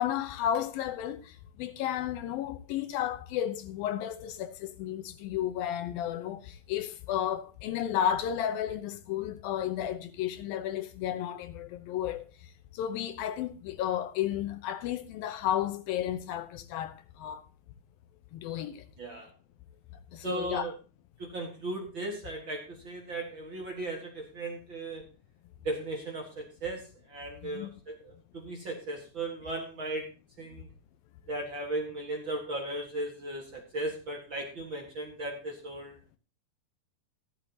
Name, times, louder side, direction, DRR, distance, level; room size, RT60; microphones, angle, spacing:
voice 1, 0.0-17.5 18.3-18.9 20.1-20.7 27.4-27.7, left 10 dB, 80° left, 2.5 m, -33 dB
voice 2, 19.0-19.3 20.2-20.7 21.2-25.1 25.6-30.1 30.4-30.7 31.3-36.0, right 2 dB, 40° right, 1.9 m, -37 dB
14.5 x 11.5 x 2.9 m
omnidirectional pair, 4.4 m